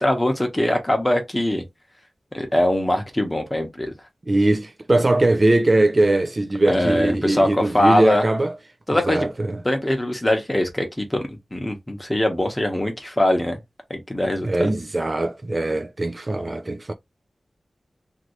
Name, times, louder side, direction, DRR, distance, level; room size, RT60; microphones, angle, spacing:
voice 1, 0.0-1.6 2.3-3.9 6.7-8.3 8.9-9.2 9.6-13.6 13.9-14.7, left 1 dB, 15° left, 1.0 m, -22 dB
voice 2, 4.3-8.5 8.9-9.6 14.4-16.9, right 2 dB, 35° right, 0.4 m, -21 dB
2.9 x 2.6 x 3.0 m
wide cardioid pair, 85°, 0 cm